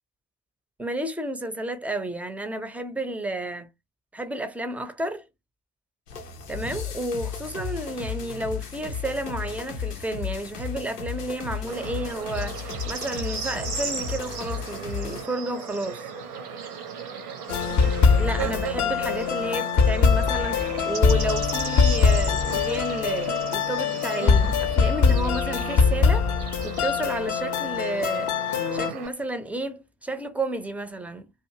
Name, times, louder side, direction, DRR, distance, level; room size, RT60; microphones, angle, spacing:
voice 1, 0.8-3.7 4.1-5.2 6.5-16.1 18.2-28.3 28.7-31.3, right 1 dB, 5° right, 0.5 m, -31 dB
sound 1, 6.1-15.3, left 6 dB, 90° left, 0.6 m, -34 dB
Bird / Insect, 11.7-29.1, right 5 dB, 80° right, 0.8 m, -36 dB
sound 2, 17.5-28.9, left 6 dB, 40° left, 0.6 m, -22 dB
2.5 x 2.3 x 2.7 m
figure-of-eight pair, 45°, 45 cm